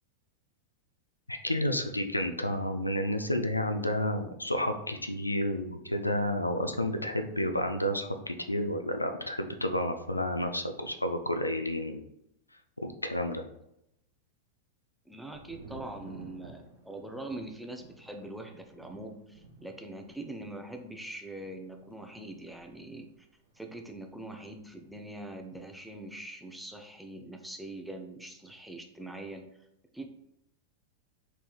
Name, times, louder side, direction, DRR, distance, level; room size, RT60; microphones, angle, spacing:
voice 1, 1.3-12.0 12.8-13.4, left 1 dB, 85° left, 6 dB, 0.3 m, -31 dB
voice 2, 15.1-23.0 23.6-29.5 29.9-30.1, right 1 dB, ahead, 3 dB, 0.4 m, -43 dB
Thunder, 15.3-25.0 25.2-26.0, right 2 dB, 65° right, 0.6 m, -53 dB
3.3 x 3.2 x 2.3 m, 0.82 s
figure-of-eight pair, 90°, 0 cm